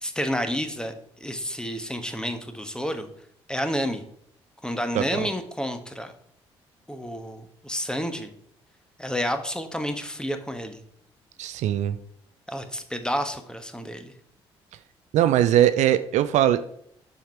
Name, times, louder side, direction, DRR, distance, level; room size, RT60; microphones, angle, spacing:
voice 1, 0.0-0.9 1.2-3.1 3.5-4.0 4.6-6.1 6.9-8.3 9.0-10.8 12.5-14.1, equal, 5° left, 7 dB, 1.2 m, -30 dB
voice 2, 4.9-5.3 11.4-12.0 15.1-16.6, right 11 dB, 60° right, 12 dB, 0.4 m, -21 dB
7.1 x 5.6 x 4.5 m, 0.68 s
hypercardioid pair, 45°, 13 cm